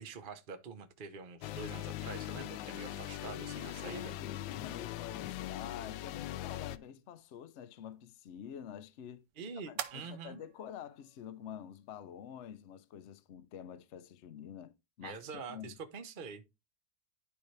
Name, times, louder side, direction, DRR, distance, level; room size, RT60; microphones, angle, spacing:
voice 1, 0.0-4.1 9.4-10.4 15.0-16.6, right 5 dB, 40° right, 0.7 m, -46 dB
sound 1, 1.4-6.8, left 13 dB, 85° left, 1.3 m, -41 dB
voice 2, 3.8-9.3 9.7-15.8, left 9 dB, 60° left, 0.8 m, -48 dB
sound 2, 6.3-13.2, right 11 dB, 70° right, 1.3 m, -51 dB
11.0 x 4.5 x 3.2 m
omnidirectional pair, 2.0 m